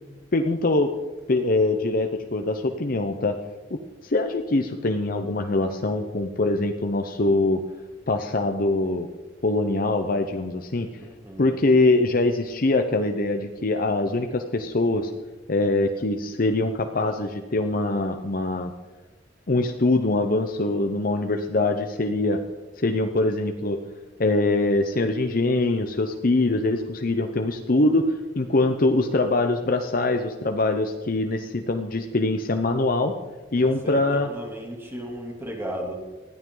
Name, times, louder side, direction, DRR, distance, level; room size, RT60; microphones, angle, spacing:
voice 1, 0.3-0.9 1.3-3.4 3.7-7.6 8.1-9.1 9.4-10.9 11.4-15.1 15.5-18.7 19.5-22.4 22.8-23.8 24.2-33.1 33.5-34.3, left 2 dB, 50° left, 5 dB, 0.8 m, -23 dB
voice 2, 33.6-36.0, equal, 15° right, -1 dB, 2.9 m, -35 dB
20.0 x 14.0 x 3.9 m, 1.2 s
head